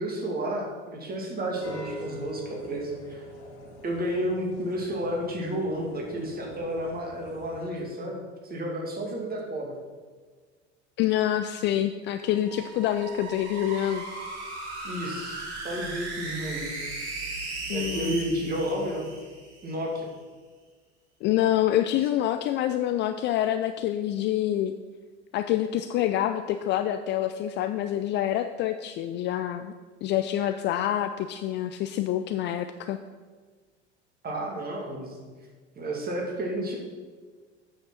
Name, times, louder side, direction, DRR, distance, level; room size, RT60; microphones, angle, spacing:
voice 1, 0.0-3.2 3.8-9.7 14.8-16.7 17.7-19.1 19.6-20.1 34.2-35.2 35.8-36.8, right 1 dB, 25° right, 0 dB, 2.4 m, -31 dB
sound 1, 1.6-7.7, equal, 70° left, 2.3 m, -43 dB
voice 2, 11.0-14.0 17.7-18.2 21.2-24.7 25.3-29.7 30.0-33.0, left 12 dB, 35° left, 9 dB, 0.4 m, -26 dB
sound 2, 12.2-19.7, right 3 dB, 65° right, 2.3 m, -37 dB
8.6 x 6.6 x 5.8 m, 1.5 s
figure-of-eight pair, 75°, 35 cm